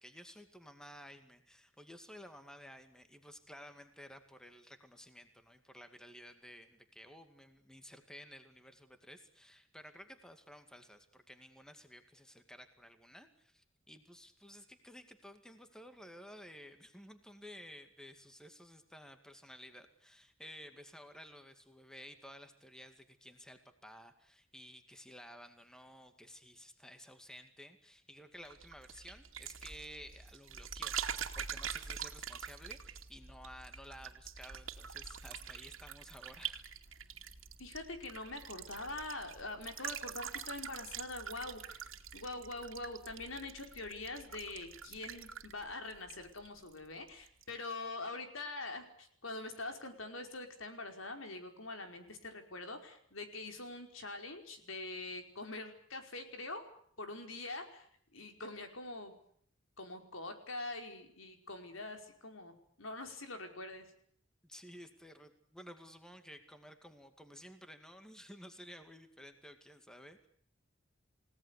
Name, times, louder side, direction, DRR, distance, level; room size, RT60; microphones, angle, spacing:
voice 1, 0.0-31.0 31.3-36.6 64.4-70.3, equal, 5° left, 8 dB, 2.2 m, -54 dB
sound 1, 28.4-46.8 47.1-47.5, right 8 dB, 85° right, 2.5 m, -45 dB
voice 2, 37.6-41.9 42.1-56.6 57.0-57.9 58.1-59.2 59.8-63.9, left 2 dB, 85° left, 5 dB, 5.1 m, -44 dB
29.5 x 17.5 x 8.4 m, 0.64 s
head